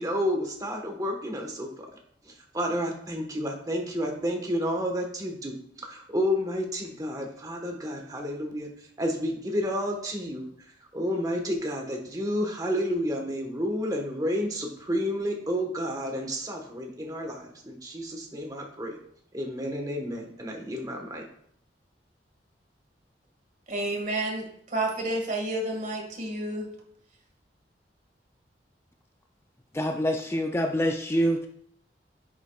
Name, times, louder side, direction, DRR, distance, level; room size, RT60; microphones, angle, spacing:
voice 1, 0.0-1.9 2.5-8.7 9.0-10.5 10.9-19.0 19.3-21.2, equal, 20° right, 1.3 m, -30 dB
voice 2, 23.7-24.5 24.7-26.7, right 1 dB, 45° right, 1.8 m, -30 dB
voice 3, 29.7-31.5, equal, 15° left, 0.4 m, -26 dB
10.0 x 7.1 x 2.4 m
head